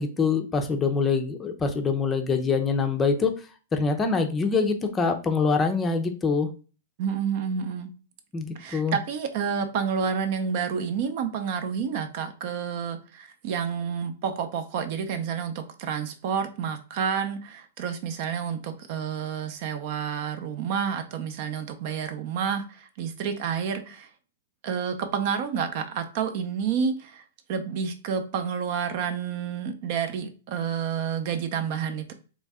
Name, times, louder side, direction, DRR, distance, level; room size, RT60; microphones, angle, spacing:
voice 1, 0.0-3.3 3.7-6.5 8.3-9.0, left 4 dB, 15° left, 0.6 m, -24 dB
voice 2, 7.0-7.9 8.5-24.1 24.6-27.2 27.5-32.1, right 7 dB, 45° right, 0.7 m, -29 dB
4.0 x 3.3 x 3.5 m
hypercardioid pair, 145°, 0 cm